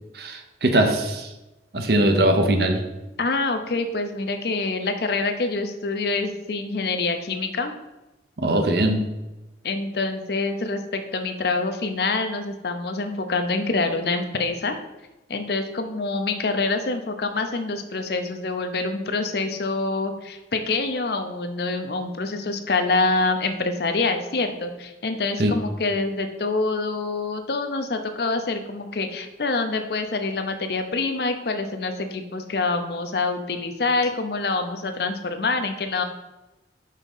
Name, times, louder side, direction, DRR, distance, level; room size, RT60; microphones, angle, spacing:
voice 1, 0.1-1.3 1.7-2.8 8.4-9.1 25.4-25.5, right 1 dB, 60° right, 5 dB, 0.7 m, -21 dB
voice 2, 3.2-7.7 9.6-14.7 15.3-36.0, left 3 dB, 60° left, 7 dB, 0.6 m, -26 dB
5.6 x 3.6 x 5.4 m, 1.0 s
head